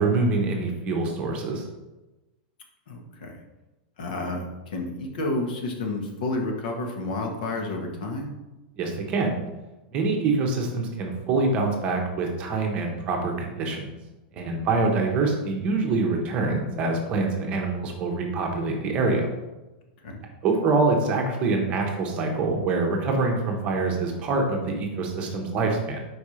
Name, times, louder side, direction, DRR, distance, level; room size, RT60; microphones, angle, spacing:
voice 1, 0.0-1.6 8.8-9.3 9.9-13.9 14.3-19.3 20.4-26.0, right 3 dB, 25° right, 2 dB, 0.8 m, -25 dB
voice 2, 2.9-3.4 4.0-8.3 14.5-14.9 20.0-20.2, left 2 dB, 70° left, 2 dB, 1.3 m, -31 dB
4.7 x 4.3 x 4.9 m, 1.1 s
supercardioid pair, 175°, 5 cm